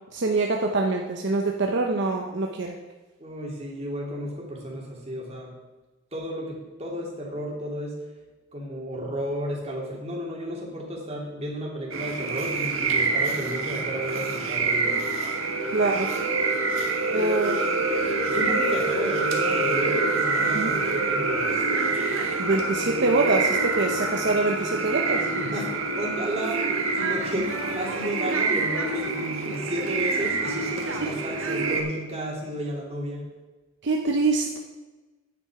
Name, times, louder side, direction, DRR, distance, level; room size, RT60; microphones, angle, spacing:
voice 1, 0.1-2.8 15.7-16.1 17.1-17.6 20.5-20.8 22.4-25.3 31.0-31.1 33.8-34.6, right 3 dB, 60° right, 1 dB, 0.8 m, -25 dB
voice 2, 3.2-5.5 6.1-8.0 8.5-15.1 17.1-21.5 25.4-26.6 27.0-33.2, equal, 30° right, -2 dB, 2.6 m, -33 dB
sound 1, 11.9-31.8, right 3 dB, 85° right, 1.6 m, -26 dB
9.6 x 8.7 x 4.8 m, 1.2 s
head